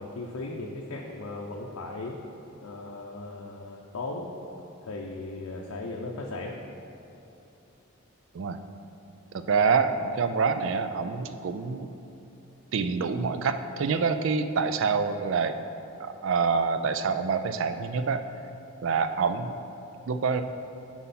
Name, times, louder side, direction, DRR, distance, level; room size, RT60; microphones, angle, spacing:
voice 1, 0.0-2.2 2.6-4.3 4.8-6.6, left 2 dB, 90° left, -1 dB, 0.6 m, -37 dB
voice 2, 9.3-11.9 12.7-15.6 16.0-18.2 18.8-19.6 20.1-20.4, right 5 dB, 60° right, 9 dB, 0.4 m, -26 dB
9.2 x 4.4 x 4.2 m, 2.9 s
head